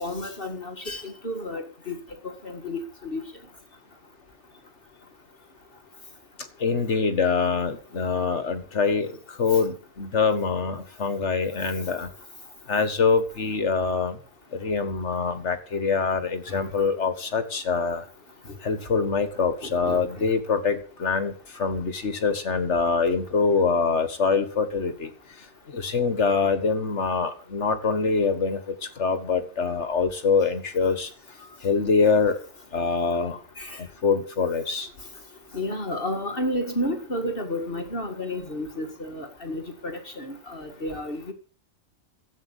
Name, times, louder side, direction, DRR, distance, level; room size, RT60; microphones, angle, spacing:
voice 1, 0.0-2.0 2.4-3.2 16.5-16.6 19.6-20.3 33.6-33.8 35.5-41.3, left 1 dB, 45° left, 5 dB, 2.2 m, -31 dB
voice 2, 6.6-12.1 12.7-14.2 14.5-18.1 18.6-25.1 25.7-31.1 31.6-32.4 32.7-33.4 33.7-34.9, left 5 dB, 65° left, 10 dB, 1.9 m, -24 dB
13.0 x 8.8 x 8.3 m, 0.42 s
omnidirectional pair, 1.3 m